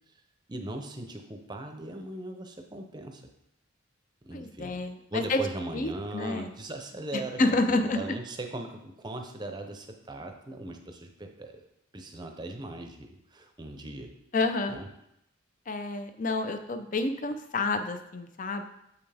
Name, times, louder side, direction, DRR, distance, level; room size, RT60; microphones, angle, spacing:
voice 1, 0.5-3.2 4.2-4.8 5.1-11.6 11.9-14.1 14.7-14.9, right 1 dB, 20° right, 4 dB, 0.7 m, -39 dB
voice 2, 4.3-5.4 5.7-6.5 7.1-8.2 14.3-14.8 15.7-18.6, left 2 dB, 40° left, 8 dB, 0.5 m, -29 dB
6.9 x 5.6 x 3.4 m, 0.80 s
head